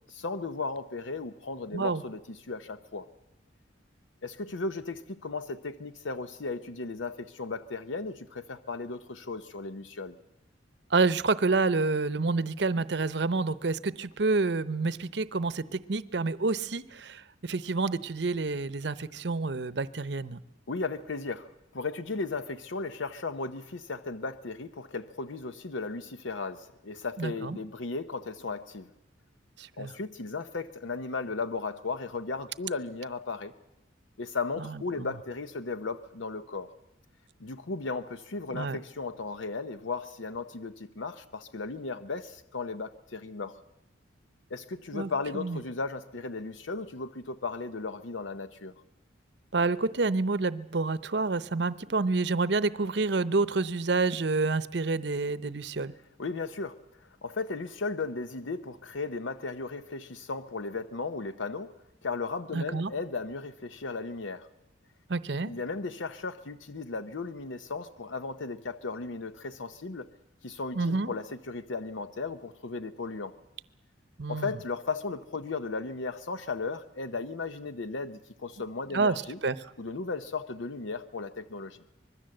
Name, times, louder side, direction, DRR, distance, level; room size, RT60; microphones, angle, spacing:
voice 1, 0.1-3.1 4.2-10.2 20.7-28.9 29.8-33.5 34.2-36.7 37.4-43.6 44.5-48.7 56.2-61.7 62.0-64.5 65.5-70.1 70.4-73.3 74.3-79.4 79.8-81.8, left 3 dB, 85° left, 11 dB, 0.8 m, -36 dB
voice 2, 10.9-20.4 27.2-27.6 29.6-29.9 34.6-35.1 38.5-38.8 44.9-45.6 49.5-55.9 62.5-62.9 65.1-65.5 70.7-71.1 74.2-74.5 78.9-79.6, right 3 dB, 60° right, 16 dB, 0.8 m, -28 dB
24.5 x 21.0 x 7.8 m, 0.91 s
head